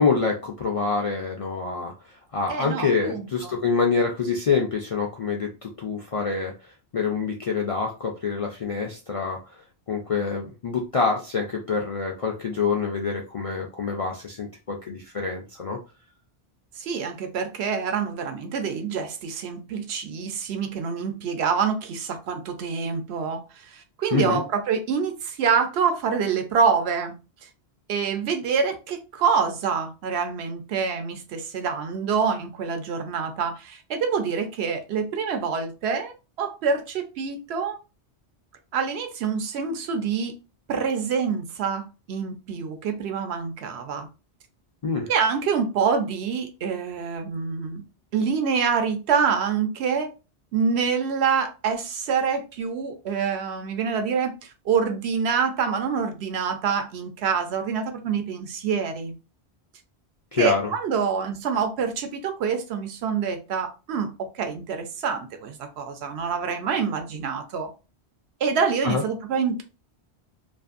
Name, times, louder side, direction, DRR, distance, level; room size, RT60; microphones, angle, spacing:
voice 1, 0.0-6.5 6.9-9.6 9.9-15.8 24.1-24.4 44.8-45.1 60.3-60.7 68.8-69.0, left 5 dB, 60° left, 0.3 m, -26 dB
voice 2, 2.5-3.5 16.8-27.1 27.9-37.8 38.7-40.3 40.7-44.1 45.1-47.8 48.1-50.1 50.5-59.1 60.3-67.7 68.4-69.6, right 6 dB, 75° right, 0.8 m, -26 dB
2.5 x 2.5 x 2.4 m
omnidirectional pair, 1.1 m